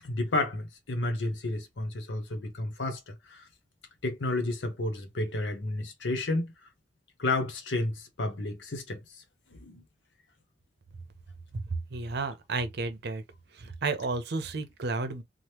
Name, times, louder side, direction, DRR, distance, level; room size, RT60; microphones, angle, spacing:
voice 1, 0.0-3.5 4.0-6.5 7.2-9.2 9.5-9.8 14.5-14.6, left 2 dB, 90° left, 0.8 m, -31 dB
voice 2, 11.9-13.2 13.6-15.2, right 3 dB, 65° right, 0.6 m, -32 dB
2.9 x 2.0 x 3.3 m
head